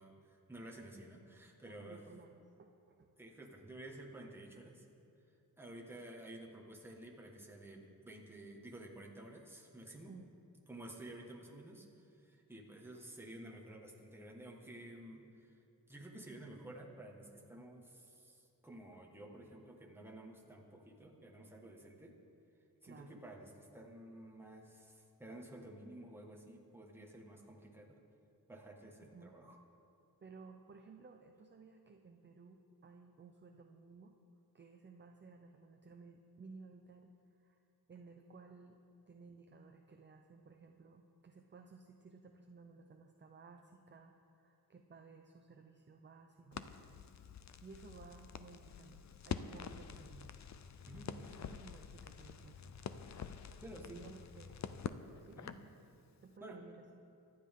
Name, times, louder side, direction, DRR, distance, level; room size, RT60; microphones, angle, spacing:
voice 1, 0.0-2.0 3.2-4.9 5.6-10.1 10.7-15.6 15.9-22.2 22.8-28.0 28.5-29.6 50.9-51.4 53.6-54.1 55.4-55.5 56.4-56.6, right 1 dB, 5° right, -2 dB, 1.7 m, -52 dB
voice 2, 1.6-3.1 10.1-10.3 22.8-23.2 29.0-29.3 30.2-34.1 34.5-37.1 37.4-37.6 37.9-38.8 39.1-47.2 47.6-50.4 51.2-52.7 53.7-54.7 55.2-55.4 56.2-57.0, right 4 dB, 30° right, 4 dB, 0.7 m, -57 dB
Crackle, 46.5-55.7, left 7 dB, 50° left, 0.6 m, -47 dB
24.0 x 10.5 x 3.8 m, 2.7 s
wide cardioid pair, 155°, 36 cm